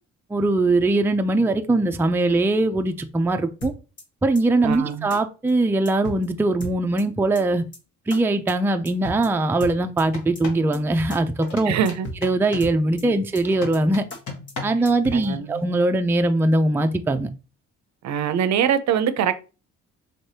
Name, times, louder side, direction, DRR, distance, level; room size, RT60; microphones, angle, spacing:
voice 1, 0.3-3.7 4.2-7.6 8.1-11.8 12.2-14.0 14.6-17.3, right 2 dB, 10° right, 0.4 m, -21 dB
sound 1, 3.6-4.0 4.3-4.4 4.7-4.8 5.1-5.2 5.5-5.6 5.8-6.3 6.6-7.0 7.3-7.4 7.7-7.8 8.1-8.2 8.5-8.6 8.8-9.3 9.6-10.0 10.3-10.4 10.7-10.8 11.1-11.2 11.5-11.6 11.8-12.3 12.6-13.0 13.3-13.4 13.7-13.8 14.1-14.2 14.5-14.6 14.8-15.3, equal, 40° left, 1.3 m, -35 dB
voice 2, 4.6-5.1 11.7-12.1 13.0-13.2 15.1-15.6 18.0-19.5, right 8 dB, 65° right, 0.5 m, -23 dB
sound 2, 10.1-10.7 11.4-12.8 13.4-14.9, left 4 dB, 70° left, 1.5 m, -37 dB
4.3 x 3.3 x 2.7 m
cardioid pair, 90°, 30 cm